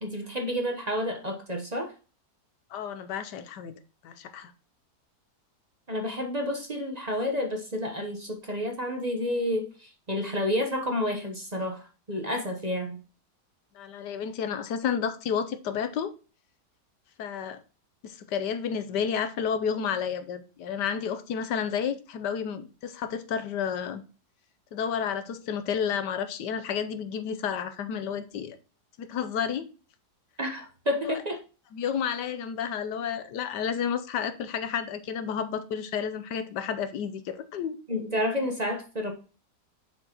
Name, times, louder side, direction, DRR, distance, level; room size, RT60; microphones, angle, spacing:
voice 1, 0.0-1.9 5.9-13.0 30.4-31.4 37.9-39.1, left 1 dB, 30° right, 1.0 m, -30 dB
voice 2, 2.7-3.7 4.0-4.5 13.7-16.1 17.2-17.6 18.0-24.0 24.7-28.6 29.0-29.7 31.0-31.2 31.7-37.8, left 7 dB, 85° left, 1.4 m, -31 dB
6.9 x 6.1 x 3.0 m
omnidirectional pair, 1.8 m